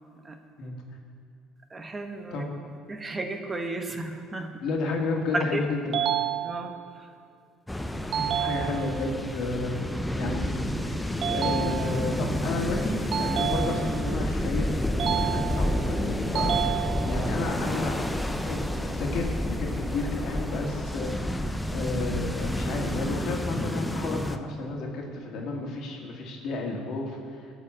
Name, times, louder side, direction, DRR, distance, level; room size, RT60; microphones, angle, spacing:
voice 1, 1.7-2.4 2.9-4.5 5.3-5.7 6.4-7.1, right 2 dB, 25° right, 5 dB, 1.1 m, -33 dB
voice 2, 4.6-6.0 8.1-9.8 10.1-11.0 11.3-17.9 18.4-21.4 21.7-27.6, left 3 dB, 60° left, 0 dB, 1.9 m, -32 dB
sound 1, 5.9-6.9 8.1-9.1 11.2-12.2 13.1-14.2 15.0-15.9 16.3-17.3, right 11 dB, 55° right, 0.4 m, -30 dB
sound 2, 7.7-24.4, left 1 dB, 10° left, 0.7 m, -29 dB
13.0 x 5.0 x 7.4 m, 2.5 s
hypercardioid pair, 70°, 0 cm